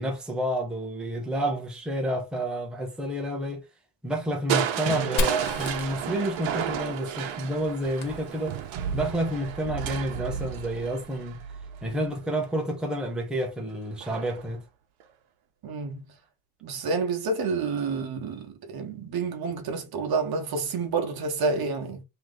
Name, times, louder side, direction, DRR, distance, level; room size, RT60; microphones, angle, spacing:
voice 1, 0.0-3.6 4.0-8.6 8.9-11.4 11.8-14.6, right 1 dB, ahead, 0.8 m, -29 dB
Crushing, 4.5-12.4 14.0-14.5 15.0-15.1, right 9 dB, 75° right, 0.9 m, -32 dB
Fire, 5.2-8.9, left 1 dB, 70° left, 1.5 m, -34 dB
voice 2, 15.6-16.0 16.6-22.0, right 4 dB, 50° right, 1.1 m, -29 dB
3.1 x 3.1 x 3.8 m
cardioid pair, 150°, 48 cm